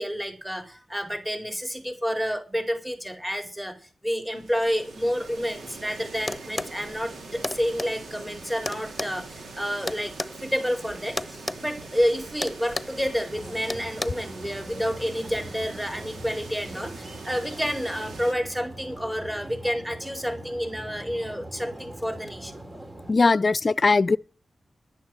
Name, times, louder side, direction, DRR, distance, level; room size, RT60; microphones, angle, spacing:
voice 1, 0.0-3.7 4.0-10.1 10.4-22.5, equal, 10° right, 4.4 m, -29 dB
sound 1, 4.3-18.3, right 3 dB, 85° right, 3.2 m, -43 dB
sound 2, 6.3-6.8 7.4-7.9 8.6-10.3 11.2-11.6 11.9-12.1 12.4-13.0 13.7-14.1, left 2 dB, 30° left, 1.0 m, -31 dB
sound 3, 13.3-23.1, right 1 dB, 35° right, 3.7 m, -42 dB
voice 2, 23.1-24.2, left 3 dB, 55° left, 0.6 m, -20 dB
11.5 x 10.5 x 7.9 m
cardioid pair, 45°, 0 cm